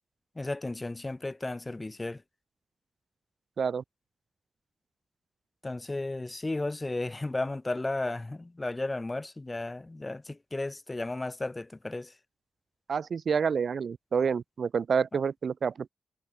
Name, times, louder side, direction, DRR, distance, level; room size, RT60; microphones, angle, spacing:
voice 1, 0.4-2.2 5.6-12.1 15.1-15.2, left 2 dB, 25° left, 3.7 m, -34 dB
voice 2, 12.9-15.9, right 6 dB, 65° right, 1.5 m, -28 dB
cardioid pair, 65°, 0 cm